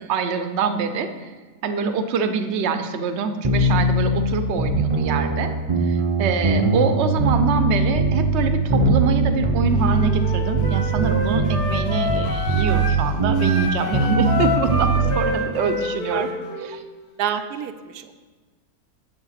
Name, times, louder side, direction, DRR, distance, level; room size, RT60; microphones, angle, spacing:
voice 1, 0.0-1.3 1.6-5.5 5.8-16.3 16.7-16.8, right 5 dB, 60° right, 8 dB, 0.8 m, -25 dB
sound 1, 3.4-15.2, right 3 dB, 40° right, 0.4 m, -21 dB
Wind instrument woodwind instrument, 9.7-13.0 13.3-16.7, left 1 dB, 75° left, 1.8 m, -28 dB
voice 2, 16.1-16.7 17.2-18.1, right 9 dB, 85° right, 8 dB, 1.2 m, -30 dB
7.3 x 6.8 x 5.7 m, 1.4 s
omnidirectional pair, 1.6 m